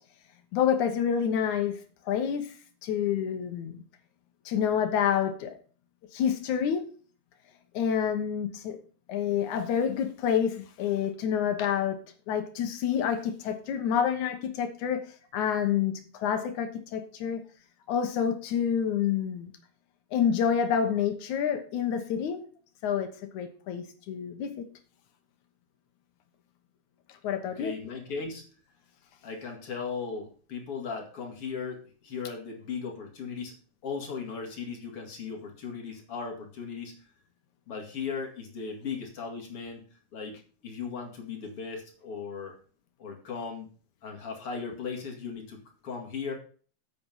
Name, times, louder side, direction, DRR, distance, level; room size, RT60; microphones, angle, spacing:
voice 1, 0.5-1.8 2.1-2.5 2.8-3.8 4.5-5.6 6.1-6.9 7.7-8.8 9.1-12.0 12.3-17.4 17.9-19.5 20.1-22.5 22.8-24.6 27.2-27.7, left 8 dB, 65° left, 2.2 m, -28 dB
voice 2, 27.6-28.4 29.2-33.5 33.8-36.9 37.7-39.8 40.1-42.6 43.0-43.7 44.0-46.3, left 5 dB, 45° left, 2.7 m, -37 dB
8.6 x 7.8 x 5.6 m
omnidirectional pair, 4.3 m